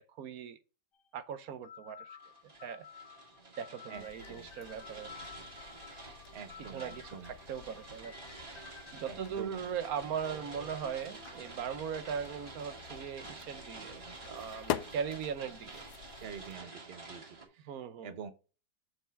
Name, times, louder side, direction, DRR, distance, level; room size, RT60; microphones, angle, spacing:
voice 1, 0.2-0.6 1.1-2.1 2.6-2.9 3.6-5.1 6.6-8.1 8.9-15.8 17.7-18.2, right 7 dB, 65° right, 1.1 m, -39 dB
sound 1, 0.9-1.1 1.6-9.2 9.7-11.3, left 7 dB, 45° left, 0.8 m, -54 dB
sound 2, 2.2-17.4, right 3 dB, 20° right, 2.3 m, -50 dB
sound 3, 3.9-16.6, left 12 dB, 80° left, 1.1 m, -46 dB
voice 2, 6.3-7.3 9.1-9.7 16.2-17.7 18.0-18.3, right 7 dB, 45° right, 0.9 m, -46 dB
6.2 x 4.8 x 5.9 m
omnidirectional pair, 1.8 m